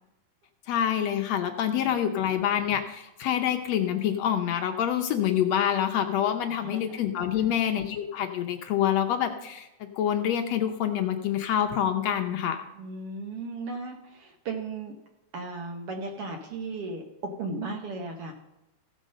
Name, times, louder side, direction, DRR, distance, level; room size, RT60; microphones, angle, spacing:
voice 1, 0.7-12.7, left 10 dB, 70° left, 6 dB, 1.7 m, -26 dB
voice 2, 6.6-7.0 7.4-7.5 12.8-15.0 15.3-18.3, right 3 dB, 65° right, 4 dB, 1.5 m, -36 dB
15.5 x 5.3 x 6.4 m, 0.97 s
omnidirectional pair, 3.7 m